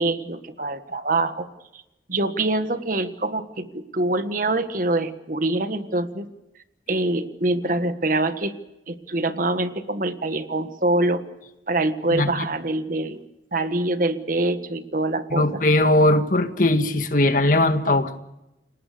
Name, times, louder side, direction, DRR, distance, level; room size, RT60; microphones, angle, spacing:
voice 1, 0.0-1.5 2.1-6.3 6.9-8.5 8.9-11.2 11.7-13.2 13.5-15.6, right 2 dB, 50° right, 9 dB, 1.6 m, -24 dB
voice 2, 15.3-18.2, left 1 dB, 50° left, 8 dB, 1.8 m, -19 dB
30.0 x 18.5 x 6.8 m, 0.91 s
head